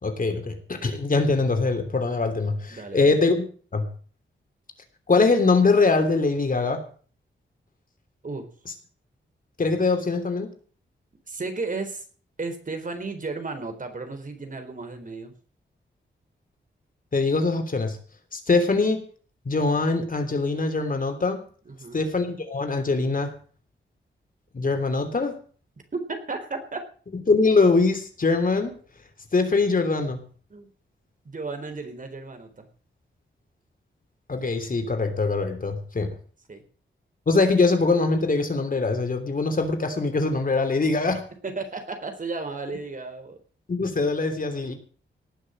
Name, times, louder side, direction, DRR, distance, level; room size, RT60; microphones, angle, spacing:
voice 1, 0.0-3.4 3.7-3.8 5.1-6.8 9.6-10.5 17.1-18.0 18.3-19.0 19.4-21.4 21.9-23.3 24.5-25.4 27.3-28.7 29.3-30.2 34.3-36.1 37.3-41.2 43.7-44.7, left 3 dB, 45° left, 6 dB, 3.1 m, -22 dB
voice 2, 2.7-3.1 8.2-8.4 11.3-12.0 12.4-15.3 21.7-22.0 25.9-26.8 30.5-30.7 31.2-32.7 36.5-36.6 41.4-43.4, right 3 dB, 45° right, 6 dB, 3.9 m, -34 dB
18.5 x 6.5 x 7.8 m, 0.42 s
cardioid pair, 75°, 20 cm